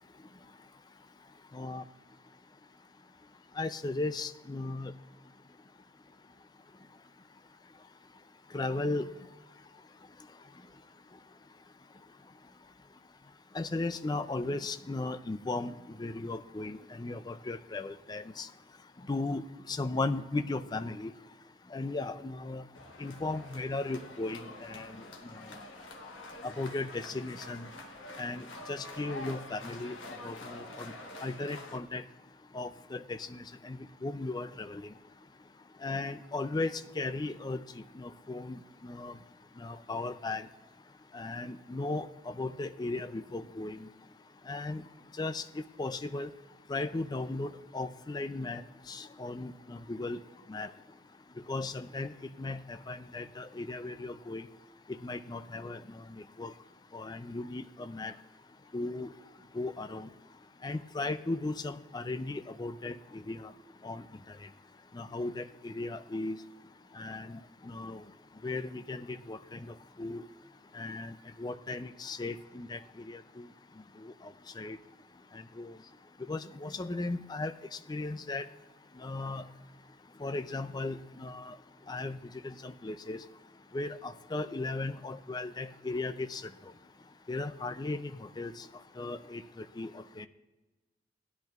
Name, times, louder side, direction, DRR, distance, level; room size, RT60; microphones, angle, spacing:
voice 1, 1.5-1.8 3.6-4.9 8.5-9.1 13.5-18.5 19.1-21.1 21.7-22.6 23.0-25.0 25.3-25.6 26.4-27.7 28.2-30.0 30.2-30.9 31.2-32.0 32.5-34.9 35.8-37.6 38.0-39.2 39.6-40.5 41.1-43.9 44.5-44.8 45.2-45.4 45.8-46.3 46.7-48.6 48.9-50.2 50.5-50.7 51.5-54.5 55.0-56.0 56.4-56.5 56.9-58.1 58.7-59.1 59.5-60.1 60.6-63.5 63.8-64.0 64.9-66.4 67.0-68.0 68.4-70.2 70.7-72.8 73.1-73.5 74.0-74.8 75.6-75.8 76.3-77.5 77.9-78.4 79.0-79.5 80.2-81.6 81.9-82.2 82.4-83.2 83.7-86.4 87.3-88.7 89.0-89.9 90.2-90.3, left 2 dB, 20° left, 10 dB, 0.4 m, -36 dB
sound 1, 22.7-31.8, left 2 dB, 90° left, 1.3 m, -47 dB
16.5 x 10.5 x 2.4 m, 1.2 s
head